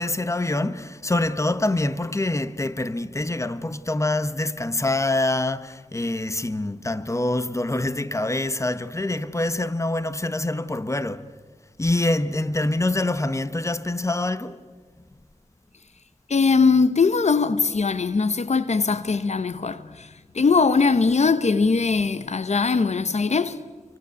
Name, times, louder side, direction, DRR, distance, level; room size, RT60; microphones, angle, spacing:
voice 1, 0.0-11.2 11.8-14.6, left 2 dB, 25° left, 1.3 m, -25 dB
voice 2, 16.3-23.6, left 4 dB, 70° left, 1.0 m, -21 dB
28.0 x 25.0 x 8.4 m
wide cardioid pair, 60°, 12 cm